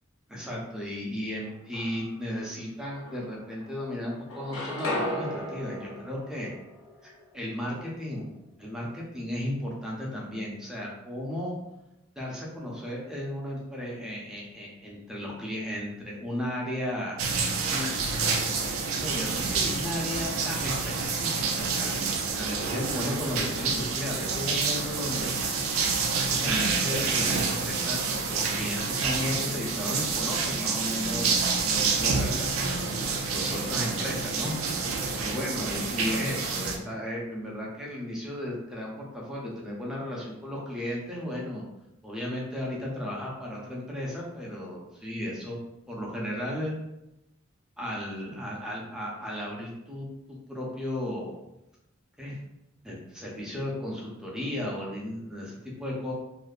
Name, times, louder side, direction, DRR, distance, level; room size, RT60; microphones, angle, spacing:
voice 1, 0.3-6.5 7.0-8.3 8.6-11.5 12.2-17.2 17.7-17.9 19.0-25.3 26.1-31.3 31.6-32.8 33.3-34.5 35.2-41.6 42.0-45.6 45.9-46.8 47.8-51.4 52.2-52.4 52.8-56.1, left 1 dB, 5° right, -4 dB, 0.5 m, -35 dB
sound 1, 1.4-2.3 2.8-3.9 4.1-8.1, left 1 dB, 90° left, 0.6 m, -36 dB
sound 2, 17.2-36.8, right 4 dB, 70° right, 0.4 m, -28 dB
2.5 x 2.2 x 2.3 m, 0.89 s
head